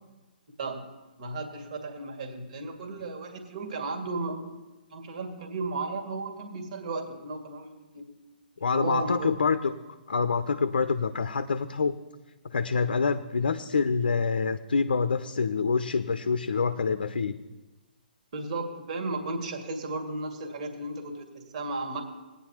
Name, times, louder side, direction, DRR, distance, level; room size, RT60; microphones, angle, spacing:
voice 1, 1.2-4.5 4.9-8.1 8.6-9.3 18.3-22.0, right 3 dB, 45° right, 3 dB, 2.2 m, -34 dB
voice 2, 8.6-9.7 10.1-12.0 12.4-17.4, left 5 dB, 65° left, 12 dB, 0.6 m, -26 dB
18.5 x 9.8 x 3.0 m, 1.1 s
figure-of-eight pair, 125°, 5 cm